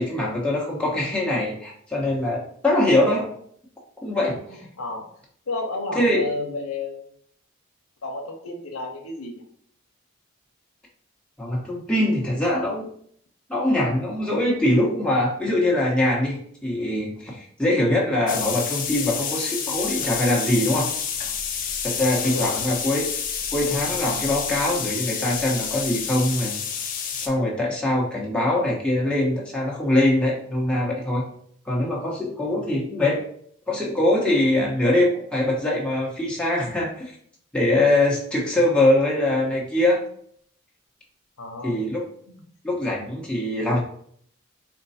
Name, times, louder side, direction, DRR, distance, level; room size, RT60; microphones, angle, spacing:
voice 1, 0.0-3.2 4.0-4.4 5.9-6.3 11.4-12.9 13.5-20.9 21.8-23.2 23.5-26.6 27.1-31.3 31.6-33.2 33.7-37.1 37.5-40.0 41.6-42.0 42.6-43.8, left 1 dB, 5° left, -5 dB, 1.0 m, -23 dB
voice 2, 4.5-7.1 8.0-9.4 22.2-22.7 32.5-32.7 41.4-41.8 42.3-42.4, left 2 dB, 85° left, 0 dB, 0.8 m, -32 dB
sound 1, 18.3-27.3, left 7 dB, 40° left, 0.5 m, -29 dB
4.4 x 2.2 x 4.1 m, 0.63 s
head